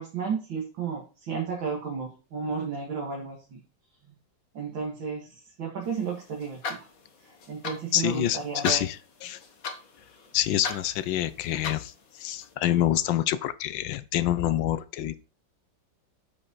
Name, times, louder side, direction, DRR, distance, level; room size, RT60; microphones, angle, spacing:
voice 1, 0.0-3.6 4.5-6.6 7.2-8.8, right 5 dB, 85° right, -1 dB, 2.6 m, -33 dB
sound 1, 5.8-12.5, left 4 dB, 50° left, 1.7 m, -40 dB
voice 2, 7.9-8.4 8.6-9.0 9.2-9.4 10.3-11.9 12.2-15.2, left 12 dB, 80° left, 15 dB, 1.4 m, -26 dB
8.7 x 5.4 x 4.0 m, 0.34 s
omnidirectional pair, 2.1 m